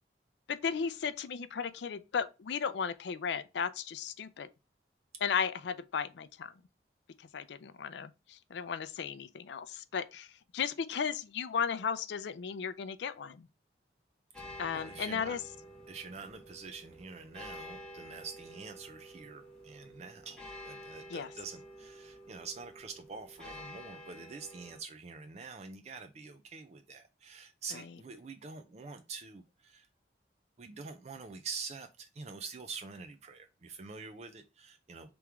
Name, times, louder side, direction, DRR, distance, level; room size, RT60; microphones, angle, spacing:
voice 1, 0.5-4.5 5.2-6.5 7.2-13.5 14.6-15.4 21.1-21.3 27.7-28.0, left 6 dB, 75° left, 0.4 m, -35 dB
sound 1, 14.3-24.8, equal, 5° left, 1.0 m, -50 dB
voice 2, 14.5-15.4 15.9-29.9 30.6-35.1, right 4 dB, 35° right, 0.4 m, -46 dB
3.5 x 3.0 x 4.7 m
head